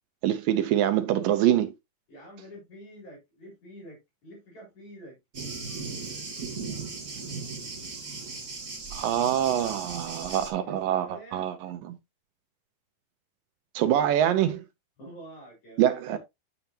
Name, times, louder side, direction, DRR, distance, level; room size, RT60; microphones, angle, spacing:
voice 1, 0.2-1.7 8.9-12.0 13.8-14.7 15.8-16.2, right 11 dB, 80° right, 2.1 m, -25 dB
voice 2, 2.1-5.2 10.2-11.5 15.0-16.2, right 1 dB, 45° left, 4.6 m, -47 dB
Thunder, 5.3-10.5, right 4 dB, 30° right, 1.5 m, -37 dB
8.4 x 7.0 x 2.8 m
omnidirectional pair, 4.7 m